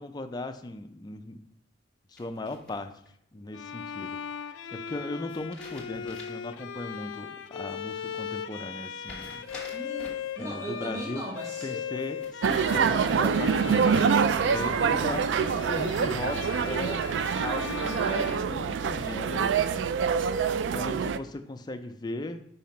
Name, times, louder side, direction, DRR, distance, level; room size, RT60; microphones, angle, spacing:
voice 1, 0.0-1.4 2.1-2.9 3.3-9.5 10.4-11.2 11.6-14.2 14.5-17.0 17.4-19.9 20.7-22.5, left 2 dB, 20° left, 7 dB, 0.4 m, -37 dB
sound 1, 2.2-3.1 5.3-6.6 6.9-7.0 9.0-10.3 11.4-12.6 13.0-13.6, left 2 dB, 5° left, 1.2 m, -48 dB
Bowed string instrument, 3.5-19.3, left 7 dB, 85° left, 0.4 m, -38 dB
voice 2, 9.5-11.9 14.3-14.9, right 1 dB, 20° right, -4 dB, 1.2 m, -39 dB
sound 2, 12.4-21.2, right 6 dB, 75° right, 0.3 m, -26 dB
5.5 x 5.0 x 4.2 m, 0.71 s
head